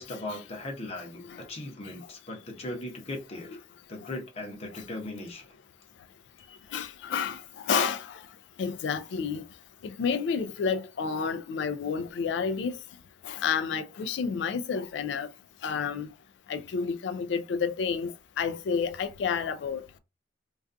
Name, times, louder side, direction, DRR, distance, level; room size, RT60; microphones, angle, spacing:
voice 1, 0.0-3.6 3.9-5.4, left 1 dB, 35° left, 0.7 m, -38 dB
voice 2, 6.7-8.2 8.6-9.4 9.8-12.8 13.2-15.3 15.6-16.1 16.5-18.1 18.4-19.8, left 6 dB, 75° left, 0.3 m, -30 dB
2.4 x 2.2 x 2.5 m
head